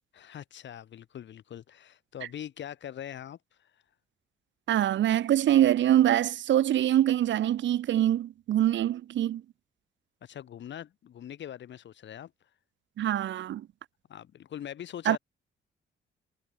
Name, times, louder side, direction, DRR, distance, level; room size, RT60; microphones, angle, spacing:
voice 1, 0.1-3.8 10.2-12.5 14.1-15.2, left 10 dB, 65° left, 5.6 m, -42 dB
voice 2, 4.7-9.4 13.0-13.7 15.1-15.2, right 12 dB, 70° right, 1.4 m, -24 dB
cardioid pair, 90°, 20 cm